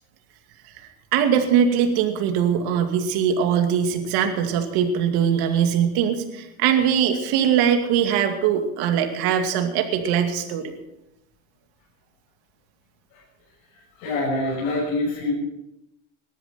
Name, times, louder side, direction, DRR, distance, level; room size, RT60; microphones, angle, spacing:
voice 1, 1.1-10.7, right 8 dB, 65° right, 5 dB, 2.5 m, -21 dB
voice 2, 14.0-15.3, left 2 dB, 75° left, -4 dB, 6.6 m, -25 dB
19.0 x 13.0 x 4.4 m, 0.89 s
supercardioid pair, 110°, 41 cm